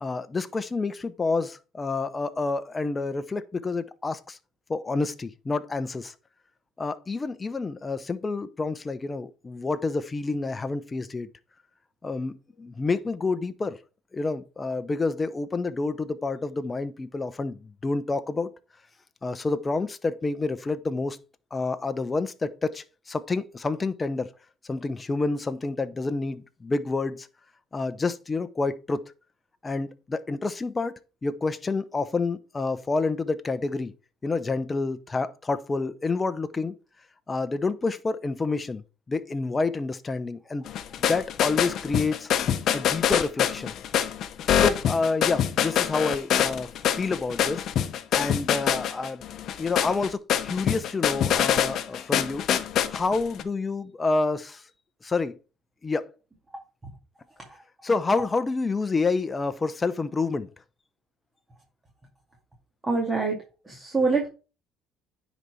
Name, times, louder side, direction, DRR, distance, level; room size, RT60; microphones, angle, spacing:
voice 1, 0.0-4.4 4.7-6.1 6.8-11.3 12.0-13.8 14.1-18.5 19.2-21.2 21.5-24.3 24.6-27.3 27.7-29.0 29.6-30.9 31.2-33.9 34.2-36.8 37.3-40.7 41.0-42.4 42.7-43.7 44.5-47.7 48.1-49.2 49.6-52.5 52.9-54.6 55.0-55.3 55.8-56.0 57.8-60.5, left 3 dB, 25° left, 0.8 m, -28 dB
sound 1, 40.7-53.4, left 9 dB, 60° left, 0.8 m, -25 dB
voice 2, 62.8-63.4 63.7-64.3, right 4 dB, 20° right, 2.3 m, -24 dB
9.9 x 4.1 x 4.7 m
supercardioid pair, 90°, 0 cm